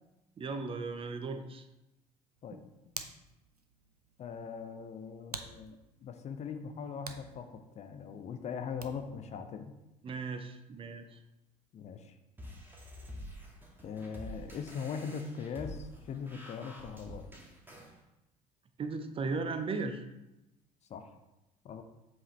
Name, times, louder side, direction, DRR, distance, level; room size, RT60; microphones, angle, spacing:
voice 1, 0.4-1.6 2.5-2.6 10.0-11.2 18.8-20.0, right 4 dB, 30° right, 7 dB, 0.7 m, -36 dB
Hands, 2.3-9.2, right 4 dB, 90° right, 0.4 m, -50 dB
voice 2, 4.2-7.5 7.7-9.7 11.7-12.2 13.8-17.3 20.9-21.1 21.6-21.8, left 6 dB, 35° left, 7 dB, 0.7 m, -40 dB
sound 1, 12.4-17.9, equal, 10° right, 1.6 m, -47 dB
7.6 x 4.9 x 3.2 m, 0.96 s
figure-of-eight pair, 60°, 19 cm